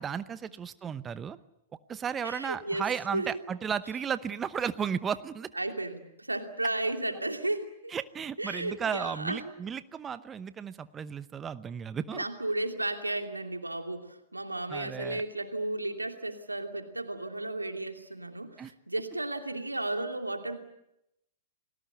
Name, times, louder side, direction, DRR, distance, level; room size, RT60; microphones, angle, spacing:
voice 1, 0.0-1.4 1.9-5.5 7.9-12.2 14.7-15.2 18.6-18.7, right 7 dB, 20° right, 14 dB, 0.9 m, -34 dB
voice 2, 2.2-2.9 3.1-3.4 5.6-7.9 8.4-9.5 12.1-20.6, right 2 dB, 90° right, 5 dB, 2.8 m, -34 dB
30.0 x 20.5 x 8.1 m, 0.83 s
figure-of-eight pair, 105°, 0 cm